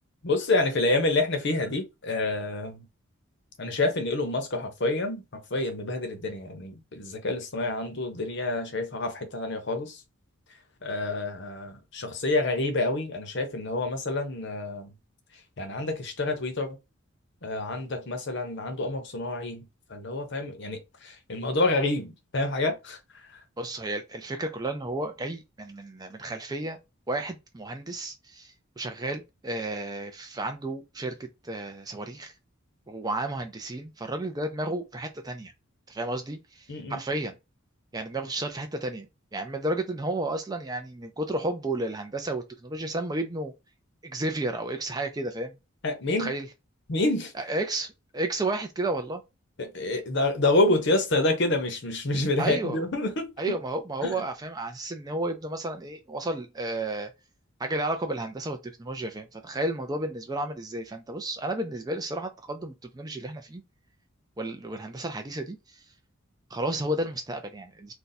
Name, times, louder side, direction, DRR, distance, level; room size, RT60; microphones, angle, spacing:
voice 1, 0.2-2.9 3.6-10.0 10.8-14.9 15.6-16.8 17.4-19.6 19.9-23.0 36.7-37.0 45.8-46.3 46.9-47.3 49.6-53.3 54.0-54.1, left 2 dB, 55° left, 0.8 m, -28 dB
voice 2, 23.6-26.8 27.1-32.3 32.9-35.5 35.9-37.3 37.9-43.5 44.0-45.5 46.2-46.5 47.3-49.2 52.4-52.8 53.4-57.1 57.6-63.6 64.4-65.8 66.5-67.9, right 2 dB, 20° right, 0.4 m, -32 dB
2.6 x 2.2 x 4.0 m
head